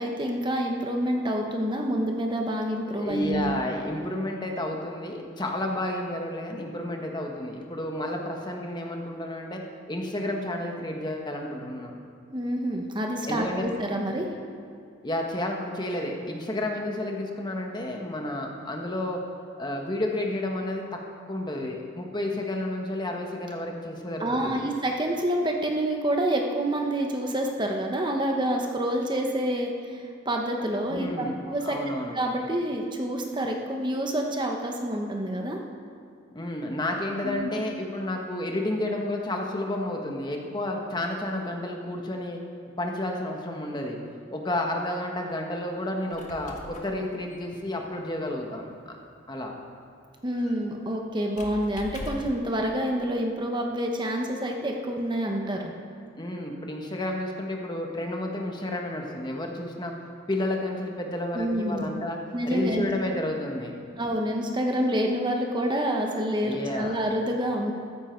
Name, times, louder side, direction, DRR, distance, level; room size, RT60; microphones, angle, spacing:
voice 1, 0.0-3.5 12.3-14.3 24.2-31.8 32.1-35.6 37.2-37.5 50.2-55.7 61.3-61.9 62.3-62.9 64.0-67.7, right 1 dB, 25° right, 2 dB, 1.1 m, -28 dB
voice 2, 2.9-9.6 9.9-12.0 13.3-13.8 15.0-19.2 19.6-20.8 21.3-24.6 30.9-32.2 36.3-42.4 42.8-44.0 44.3-49.0 49.3-49.5 56.2-59.9 60.3-62.2 62.4-63.8 66.4-66.9, left 1 dB, 20° left, 1 dB, 1.3 m, -31 dB
Squeak, 45.9-52.5, left 1 dB, 40° left, 1.6 m, -44 dB
14.5 x 14.0 x 4.6 m, 2.5 s
head